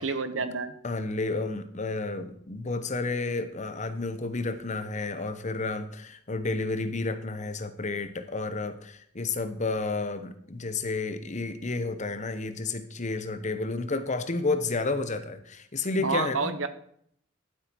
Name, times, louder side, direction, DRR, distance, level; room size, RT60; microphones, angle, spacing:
voice 1, 0.0-0.7 16.0-16.7, right 4 dB, 80° right, 11 dB, 1.2 m, -29 dB
voice 2, 0.8-16.5, left 3 dB, 40° left, 11 dB, 1.0 m, -31 dB
12.5 x 8.2 x 4.6 m, 0.66 s
head